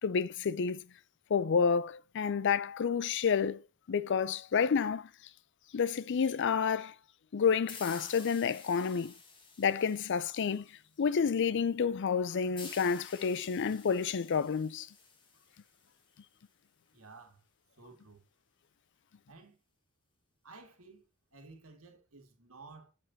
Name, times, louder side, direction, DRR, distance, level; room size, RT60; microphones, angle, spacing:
voice 1, 0.0-0.9 1.3-3.6 3.9-5.1 5.7-6.9 7.3-9.1 9.6-10.7 11.0-14.9, left 6 dB, 60° left, 0.4 m, -29 dB
sound 1, 7.7-11.1 12.6-16.1, left 4 dB, 25° left, 1.7 m, -51 dB
voice 2, 16.9-17.4 17.8-18.3 19.3-19.6 20.4-21.1 21.3-22.9, right 3 dB, 85° right, 1.9 m, -54 dB
7.7 x 6.9 x 2.7 m
head